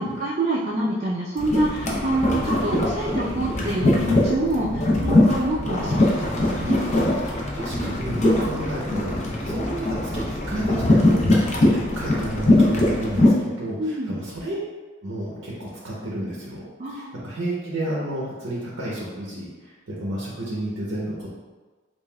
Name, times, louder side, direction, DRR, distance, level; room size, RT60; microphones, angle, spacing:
voice 1, 0.0-6.8 13.8-14.2 16.8-17.1, right 1 dB, 40° right, -7 dB, 0.4 m, -26 dB
sound 1, 1.4-13.3, left 1 dB, 35° left, 0.6 m, -22 dB
voice 2, 4.7-5.2 6.8-6.9 7.5-11.5 11.7-14.6 15.0-21.3, right 1 dB, 90° right, -6 dB, 0.7 m, -32 dB
5.3 x 2.5 x 2.2 m, 1.3 s
head